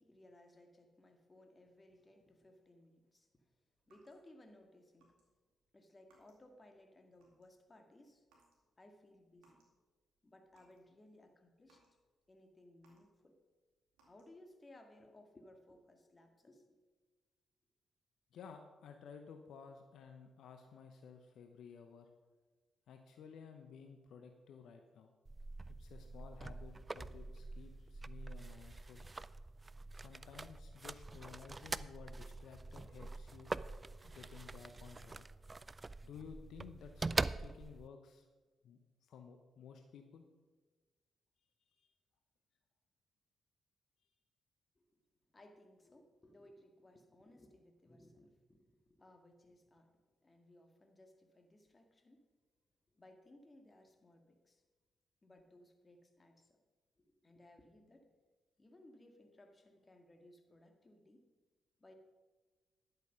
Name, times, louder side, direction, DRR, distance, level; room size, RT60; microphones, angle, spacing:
voice 1, 0.0-3.5 3.9-5.1 5.7-8.3 8.8-9.6 10.2-11.8 12.3-13.4 14.1-16.8 44.8-45.0 45.3-52.3 52.9-54.6 55.2-56.6 57.0-58.1 58.6-61.2 61.8-61.9, left 1 dB, 30° left, 5 dB, 1.9 m, -62 dB
sound 1, 3.8-4.5 5.0-5.2 5.5-6.6 7.0-7.6 8.2-8.6 8.9-9.8 10.2-10.9 11.3-13.4 13.9-14.5, right 2 dB, 80° right, 2.4 m, -73 dB
voice 2, 18.3-22.1 22.9-25.1 25.8-29.0 29.9-33.5 34.0-35.3 36.0-38.2 38.6-40.3 41.8-41.9, left 6 dB, 70° left, 5 dB, 0.7 m, -55 dB
sound 2, 25.2-37.9, right 3 dB, 30° right, 0.4 m, -44 dB
11.0 x 8.0 x 5.5 m, 1.3 s
hypercardioid pair, 45°, 0 cm